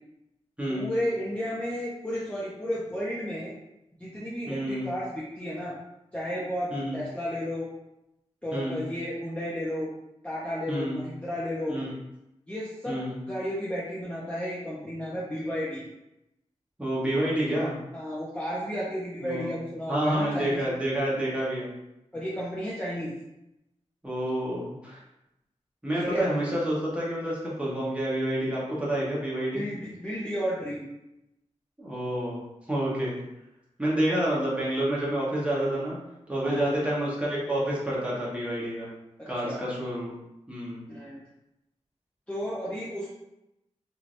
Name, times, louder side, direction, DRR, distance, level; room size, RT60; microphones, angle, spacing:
voice 1, 0.7-3.5 4.0-5.7 6.1-6.7 6.9-7.7 8.4-9.9 10.2-11.8 12.5-13.0 13.3-15.8 17.9-20.6 22.1-23.1 25.9-26.3 29.5-30.9 36.4-36.8 39.2-39.6 40.9-41.2 42.3-43.1, equal, 10° left, -8 dB, 0.6 m, -33 dB
voice 2, 4.5-4.9 6.7-7.0 8.5-8.9 10.7-11.0 11.7-11.9 12.9-13.2 16.8-17.7 19.2-19.5 19.9-21.7 24.0-25.0 25.8-29.6 31.8-32.4 32.7-33.1 33.8-35.9 36.3-38.9 39.3-40.1 40.5-40.8, right 1 dB, 10° right, -7 dB, 1.1 m, -28 dB
3.2 x 2.7 x 2.5 m, 0.89 s
wide cardioid pair, 100°, 12 cm